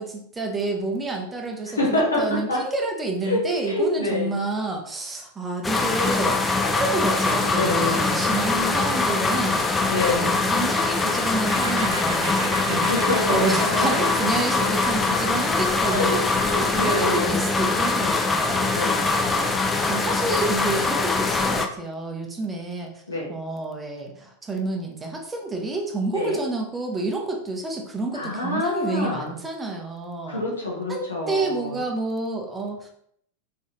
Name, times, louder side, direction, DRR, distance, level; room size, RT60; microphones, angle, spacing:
voice 1, 0.0-13.0 13.3-16.2 16.6-18.7 19.9-23.0 23.3-30.4 30.9-32.9, right 2 dB, 15° right, 1 dB, 0.8 m, -29 dB
voice 2, 1.8-2.2 2.5-2.6 3.3-4.3 7.6-8.2 9.9-10.4 12.7-13.9 15.8-17.4 18.5-19.8 23.1-23.3 26.1-26.4 28.1-29.3 30.3-31.8, left 2 dB, 75° left, -3 dB, 1.5 m, -27 dB
sound 1, 5.6-21.7, left 3 dB, 15° left, 0.5 m, -23 dB
sound 2, 11.5-19.0, right 3 dB, 55° right, 0.9 m, -36 dB
4.0 x 3.6 x 3.1 m, 0.67 s
figure-of-eight pair, 90°, 0 cm